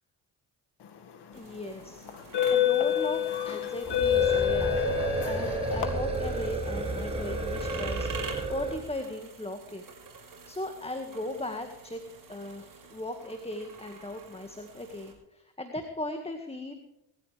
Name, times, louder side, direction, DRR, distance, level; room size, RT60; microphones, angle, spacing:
sound 1, 1.1-1.3 2.1-5.9, left 11 dB, 70° left, 2.1 m, -27 dB
voice 1, 1.3-5.0 5.2-8.1 8.5-9.8 10.5-12.0 12.3-16.7, left 1 dB, 15° left, 5 dB, 1.9 m, -37 dB
sound 2, 1.3-15.1, right 5 dB, 50° right, 5.9 m, -47 dB
sound 3, 3.8-8.8, right 2 dB, 15° right, 6.0 m, -31 dB
19.5 x 14.5 x 3.5 m, 0.86 s
cardioid pair, 85°, 42 cm